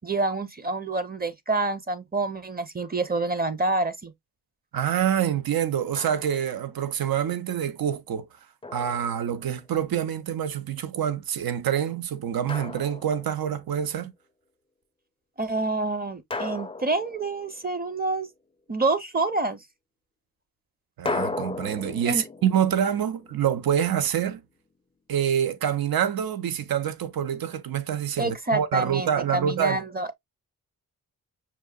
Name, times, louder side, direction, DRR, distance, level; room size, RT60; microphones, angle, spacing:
voice 1, 0.0-4.1 15.4-18.3 18.7-19.6 22.0-22.2 28.2-30.1, right 2 dB, 25° right, 0.7 m, -27 dB
voice 2, 4.7-8.3 8.7-14.1 21.0-24.4 25.1-29.8, right 9 dB, 75° right, 0.6 m, -26 dB
Drum, 5.9-6.6 8.6-9.7 12.5-13.6 16.3-18.0 21.1-24.0, left 3 dB, 15° left, 0.4 m, -36 dB
5.9 x 2.7 x 2.2 m
cardioid pair, 60°, 36 cm